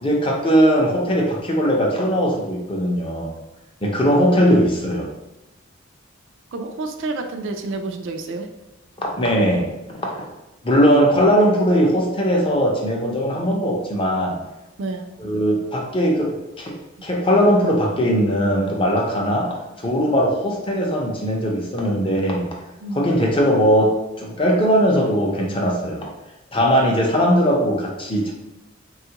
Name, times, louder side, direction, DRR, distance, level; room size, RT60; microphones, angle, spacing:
voice 1, 0.0-3.3 3.8-5.1 9.0-9.7 10.0-10.3 10.6-14.4 15.2-16.8 17.0-22.5 22.9-26.1 26.5-28.3, equal, 25° left, -1 dB, 0.5 m, -19 dB
voice 2, 6.5-8.5 14.8-15.1 17.0-17.1 21.8-21.9 22.8-23.1 28.0-28.1, right 2 dB, 75° right, 5 dB, 0.4 m, -30 dB
3.5 x 2.3 x 2.8 m, 0.99 s
head